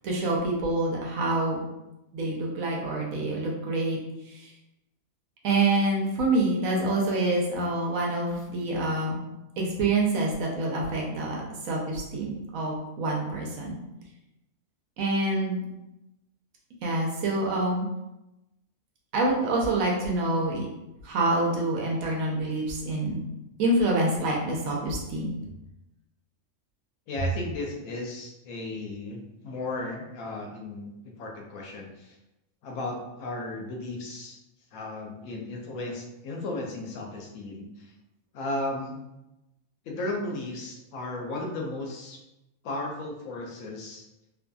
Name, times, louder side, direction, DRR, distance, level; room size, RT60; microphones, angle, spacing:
voice 1, 0.0-1.6 2.1-4.0 4.3-4.5 5.4-9.2 9.6-13.8 15.0-15.6 16.8-17.9 19.1-20.7 21.0-23.2 23.6-25.3, right 2 dB, 80° right, -1 dB, 1.0 m, -26 dB
voice 2, 27.1-32.2 32.6-34.4 34.7-37.9 38.3-39.0 39.9-42.2 42.6-44.0, left 2 dB, 80° left, 0 dB, 1.0 m, -35 dB
2.6 x 2.6 x 2.2 m, 0.93 s
omnidirectional pair, 1.5 m